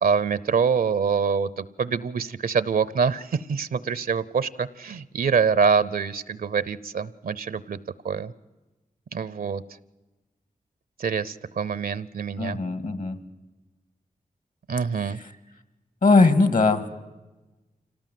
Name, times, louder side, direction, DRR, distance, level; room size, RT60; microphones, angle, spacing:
voice 1, 0.0-7.8 8.0-8.3 9.1-9.6 11.0-12.6 14.7-15.2, right 6 dB, 80° right, 18 dB, 0.7 m, -25 dB
voice 2, 12.4-13.2 15.0-15.2 16.0-16.9, left 3 dB, 65° left, 12 dB, 1.8 m, -20 dB
26.0 x 18.0 x 7.6 m, 1.1 s
wide cardioid pair, 80°, 15 cm